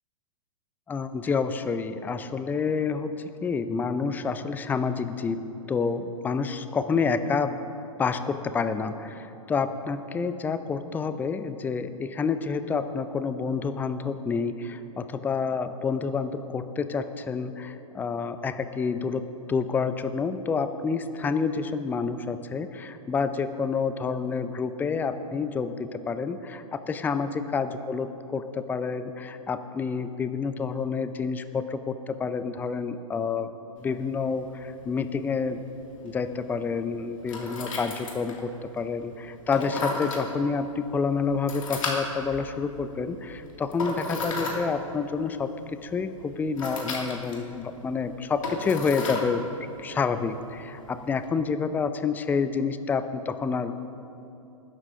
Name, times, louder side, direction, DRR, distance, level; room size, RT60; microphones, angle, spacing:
voice 1, 0.9-7.6 8.0-19.2 19.5-33.5 33.8-35.6 36.0-45.5 45.8-49.5 49.8-53.7, left 5 dB, 10° left, 11 dB, 0.4 m, -28 dB
sound 1, 33.8-51.3, left 3 dB, 70° left, 2.5 m, -37 dB
20.0 x 11.5 x 2.8 m, 2.8 s
figure-of-eight pair, 105°, 18 cm